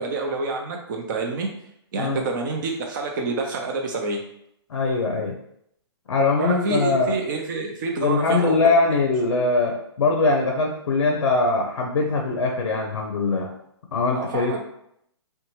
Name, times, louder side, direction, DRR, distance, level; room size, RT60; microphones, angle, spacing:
voice 1, 0.0-1.5 1.9-4.2 6.4-8.6 14.1-14.6, right 3 dB, 45° right, 2 dB, 0.6 m, -27 dB
voice 2, 4.7-5.4 6.1-7.1 8.0-13.5 13.9-14.6, left 3 dB, 85° left, 1 dB, 0.5 m, -22 dB
2.7 x 2.2 x 3.0 m, 0.73 s
hypercardioid pair, 145°, 15 cm